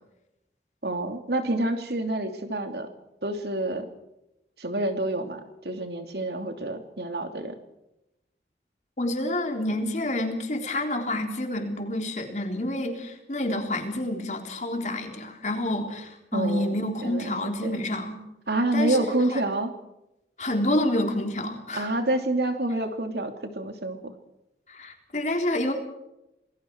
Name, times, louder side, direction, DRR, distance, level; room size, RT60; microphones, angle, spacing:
voice 1, 0.8-2.9 3.2-3.9 4.6-7.5 16.3-17.3 17.6-17.8 18.5-19.7 21.8-24.1, right 2 dB, 70° right, 5 dB, 2.9 m, -28 dB
voice 2, 9.0-18.2 18.7-19.4 20.4-21.9 24.7-25.7, left 1 dB, 40° left, 3 dB, 3.7 m, -28 dB
28.0 x 20.5 x 4.7 m, 0.90 s
head